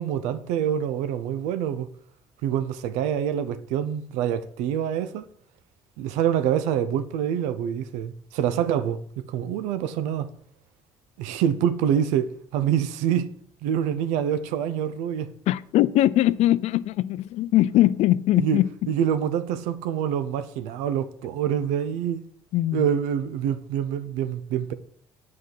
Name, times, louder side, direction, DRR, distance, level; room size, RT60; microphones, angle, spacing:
voice 1, 0.0-1.9 2.4-5.3 6.0-10.3 11.2-13.3 13.6-15.3 18.4-18.6 18.9-22.2 22.7-24.7, right 9 dB, 80° right, 0.7 m, -26 dB
voice 2, 15.5-18.7 22.5-22.9, left 14 dB, 70° left, 0.4 m, -21 dB
8.3 x 4.9 x 7.6 m
supercardioid pair, 65°, 12 cm